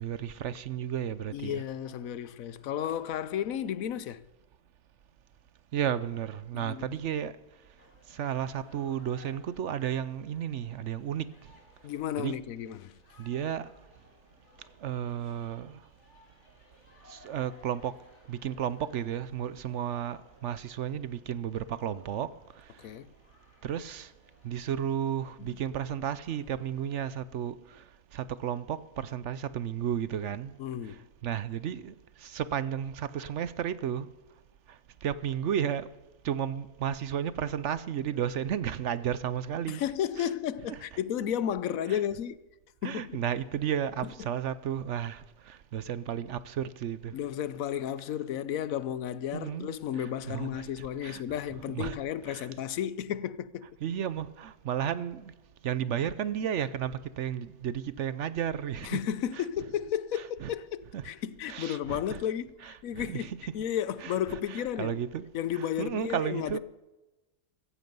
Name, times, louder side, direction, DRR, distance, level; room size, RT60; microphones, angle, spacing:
voice 1, 0.0-1.6 5.7-7.3 8.1-11.4 12.2-12.4 13.2-13.7 14.8-15.8 17.1-18.0 18.3-22.8 23.6-24.1 24.4-27.9 28.1-30.5 30.8-34.1 34.7-35.9 36.2-39.8 40.2-40.3 40.7-40.8 41.9-42.0 42.8-47.1 49.3-51.2 51.7-52.0 52.3-52.5 53.8-55.3 55.6-59.0 59.3-59.4 60.2-60.5 60.9-61.0 61.5-62.2 62.6-63.4 64.0-65.3 65.5-66.6, right 9 dB, 65° right, 0.9 m, -33 dB
voice 2, 1.3-4.3 6.5-6.9 11.8-13.0 22.8-23.1 25.4-25.5 30.6-31.1 39.7-42.4 42.8-43.2 44.0-44.1 47.1-53.7 58.8-65.0 65.3-66.6, left 10 dB, 85° left, 1.1 m, -33 dB
sound 1, 7.8-27.0, left 2 dB, 55° left, 3.0 m, -61 dB
15.5 x 14.5 x 5.3 m
omnidirectional pair, 1.4 m